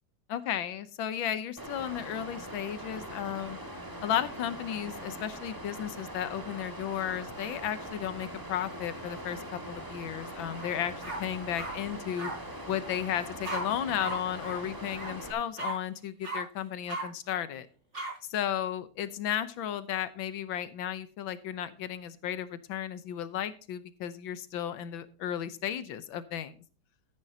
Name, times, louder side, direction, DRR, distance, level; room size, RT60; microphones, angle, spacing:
voice 1, 0.3-3.6 4.0-12.3 12.7-17.7 18.2-26.6, left 10 dB, 90° left, 14 dB, 1.7 m, -34 dB
Water, 1.6-15.3, right 1 dB, 10° right, 1.7 m, -42 dB
sound 1, 10.5-10.7 11.0-11.7 12.2-12.3 13.4-13.6 14.0-14.1 14.4-14.6 14.9-15.1 15.6-15.7 16.2-16.4 16.9-17.0 17.9-18.1, right 2 dB, 35° right, 5.1 m, -36 dB
13.5 x 10.0 x 2.8 m, 0.37 s
omnidirectional pair, 2.1 m